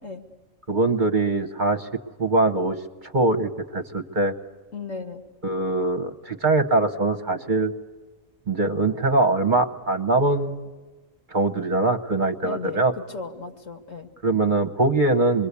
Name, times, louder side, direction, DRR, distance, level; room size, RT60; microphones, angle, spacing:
voice 1, 0.7-1.9 2.2-2.8 3.1-4.3 5.4-7.7 8.5-10.7 11.3-12.9 14.2-15.5, right 2 dB, 40° right, 7 dB, 1.1 m, -22 dB
voice 2, 4.7-5.2 12.4-12.8 13.1-14.1, left 4 dB, 70° left, 5 dB, 2.6 m, -35 dB
27.5 x 22.0 x 8.3 m, 1.3 s
omnidirectional pair, 1.4 m